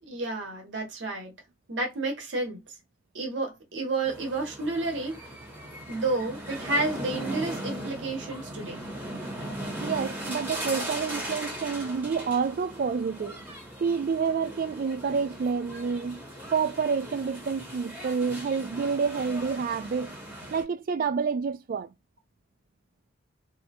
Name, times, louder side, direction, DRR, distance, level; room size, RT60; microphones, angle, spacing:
voice 1, 0.0-1.3 1.7-2.6 3.1-5.2 5.9-8.8, right 2 dB, 65° right, 0.8 m, -30 dB
sound 1, 4.0-20.6, right 1 dB, 10° right, 1.0 m, -38 dB
voice 2, 9.8-13.4 13.8-16.2 16.5-20.1 20.5-21.9, right 5 dB, 50° right, 0.3 m, -28 dB
2.7 x 2.1 x 2.7 m
head